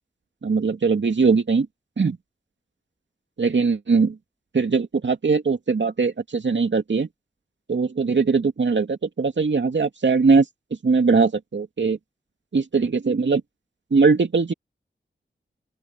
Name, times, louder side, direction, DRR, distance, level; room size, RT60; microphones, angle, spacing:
voice 1, 0.4-1.7 2.0-2.2 3.4-4.2 4.5-7.1 7.7-10.5 10.8-12.0 12.5-13.4 13.9-14.5, right 4 dB, 70° right, 2.5 m, -20 dB
open air
cardioid pair, 45°, 19 cm